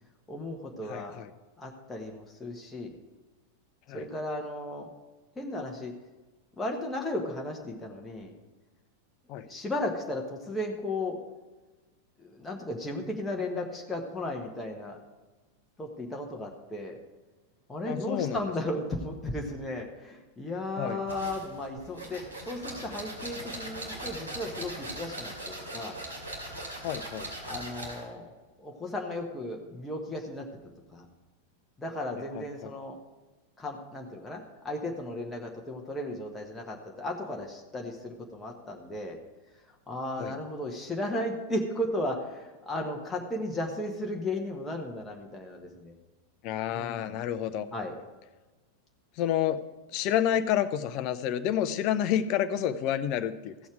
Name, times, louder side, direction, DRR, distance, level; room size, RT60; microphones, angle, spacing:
voice 1, 0.3-1.1 1.6-2.9 3.9-4.9 5.4-5.9 6.6-8.3 9.4-11.2 12.2-15.0 15.8-16.9 17.7-26.0 27.5-28.3 28.6-30.4 30.9-31.0 31.8-32.9 33.6-39.2 39.9-45.9 46.7-47.2 47.7-47.9, left 1 dB, 10° left, 0 dB, 1.3 m, -35 dB
voice 2, 0.9-1.3 3.9-4.1 9.3-9.5 17.9-18.4 20.8-21.0 26.8-27.3 32.1-32.7 40.2-40.3 46.4-47.7 49.2-49.6 49.9-53.5, left 10 dB, 40° left, 12 dB, 0.7 m, -29 dB
sound 1, 21.1-28.1, right 1 dB, 75° right, 2.5 m, -40 dB
15.5 x 7.1 x 4.8 m, 1.2 s
figure-of-eight pair, 90°, 0 cm